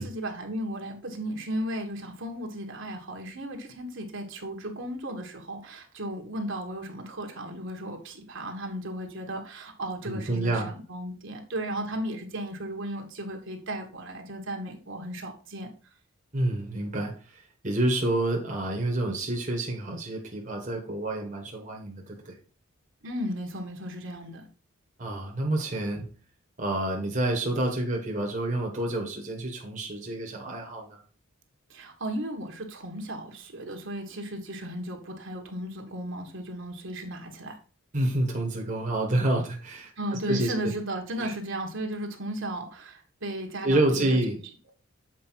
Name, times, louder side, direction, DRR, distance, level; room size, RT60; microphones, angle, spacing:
voice 1, 0.0-15.7 23.0-24.4 31.7-37.6 40.0-44.2, right 1 dB, 60° right, 2 dB, 1.5 m, -35 dB
voice 2, 10.0-10.7 16.3-22.4 25.0-26.1 26.6-31.0 37.9-39.9 40.3-40.7 41.2-41.3 43.6-44.4, right 1 dB, 35° right, 0 dB, 1.4 m, -28 dB
7.7 x 4.7 x 4.5 m, 0.37 s
head